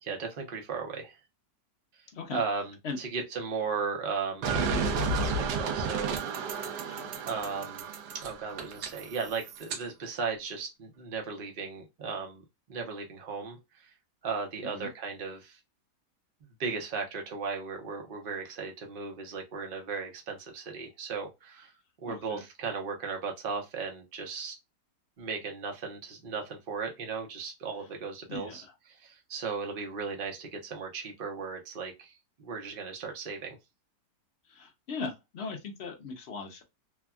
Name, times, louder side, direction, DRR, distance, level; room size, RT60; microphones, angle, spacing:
voice 1, 0.0-1.2 1.9-6.2 7.3-7.8 8.1-12.4 12.7-13.9 14.2-15.6 16.6-21.7 22.0-24.6 25.2-28.6 28.9-33.6, right 5 dB, 45° right, 0.8 m, -36 dB
sound 1, 4.4-9.8, right 4 dB, 80° right, 1.2 m, -32 dB
voice 2, 22.1-22.4 28.3-28.7 34.5-36.6, left 4 dB, 60° left, 0.7 m, -38 dB
3.4 x 2.3 x 2.2 m
omnidirectional pair, 1.8 m